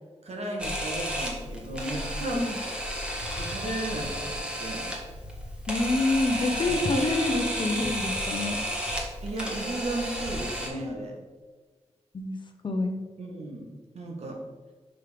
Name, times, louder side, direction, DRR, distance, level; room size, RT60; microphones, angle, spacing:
voice 1, 0.2-2.7 3.4-4.9 6.5-7.0 7.3-7.9 9.2-11.2 13.2-13.7 13.9-14.4, right 2 dB, 70° right, 0 dB, 1.6 m, -35 dB
Camera, 0.6-10.7, equal, 10° right, 1.5 m, -32 dB
voice 2, 5.7-8.6 12.1-12.4 12.6-13.0, left 2 dB, 45° left, 5 dB, 0.9 m, -27 dB
6.0 x 5.4 x 5.2 m, 1.4 s
wide cardioid pair, 115°, 12 cm